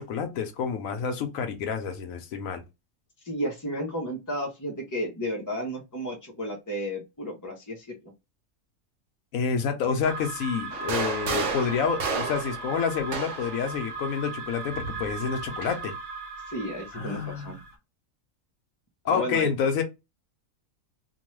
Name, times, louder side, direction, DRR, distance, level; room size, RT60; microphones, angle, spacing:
voice 1, 0.0-2.6 9.3-15.9 16.9-17.6 19.1-19.8, left 6 dB, 85° left, 1.1 m, -28 dB
voice 2, 3.2-7.9 16.5-17.6 19.0-19.5, equal, 25° left, 0.4 m, -32 dB
sound 1, 10.0-17.7, right 4 dB, 50° right, 0.7 m, -37 dB
Side by side multiple shooters, 10.7-13.6 14.7-15.8, right 5 dB, 65° right, 1.0 m, -32 dB
2.9 x 2.2 x 3.0 m
omnidirectional pair, 1.4 m